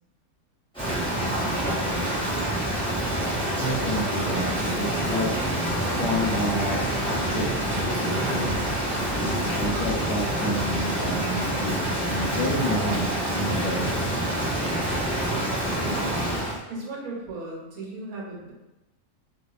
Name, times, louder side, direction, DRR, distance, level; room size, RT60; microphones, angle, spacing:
Rain, 0.7-16.6, right 1 dB, 10° left, 0.3 m, -27 dB
voice 1, 3.6-5.3 5.8-8.6 9.2-13.1 13.3-13.8, equal, 70° left, -6 dB, 0.9 m, -30 dB
voice 2, 15.0-16.1 16.7-18.5, right 2 dB, 70° right, -3 dB, 1.1 m, -37 dB
2.5 x 2.3 x 2.3 m, 0.99 s
omnidirectional pair, 1.6 m